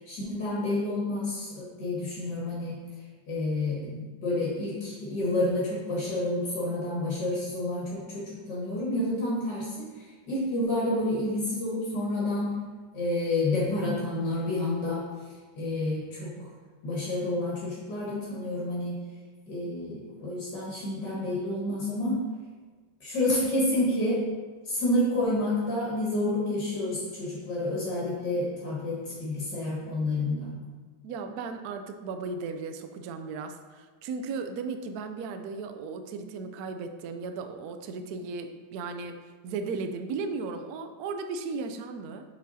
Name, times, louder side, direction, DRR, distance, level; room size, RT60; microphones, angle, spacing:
voice 1, 0.0-2.8 3.3-12.6 12.9-15.0 15.6-16.5 16.8-19.0 19.5-22.2 23.0-24.2 24.6-30.5, left 1 dB, 60° left, -6 dB, 2.3 m, -29 dB
voice 2, 31.0-39.2 39.4-42.2, right 4 dB, 70° right, 7 dB, 0.9 m, -36 dB
6.6 x 4.8 x 4.1 m, 1.4 s
omnidirectional pair, 2.1 m